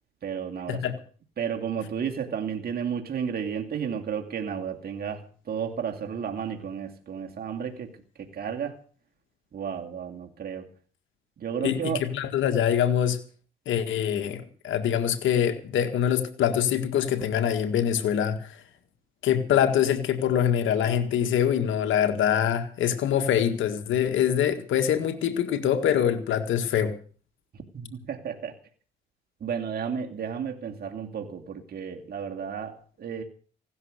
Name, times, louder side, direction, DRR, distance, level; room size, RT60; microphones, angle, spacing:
voice 1, 0.2-0.9 1.4-7.9 8.2-8.8 9.5-10.7 11.4-12.1 27.5-28.6 29.4-33.2, right 7 dB, 50° right, 2 dB, 2.5 m, -32 dB
voice 2, 12.1-13.2 13.7-18.6 19.2-27.0, left 9 dB, 75° left, 6 dB, 1.8 m, -24 dB
16.0 x 12.5 x 6.6 m, 0.43 s
cardioid pair, 90°, 20 cm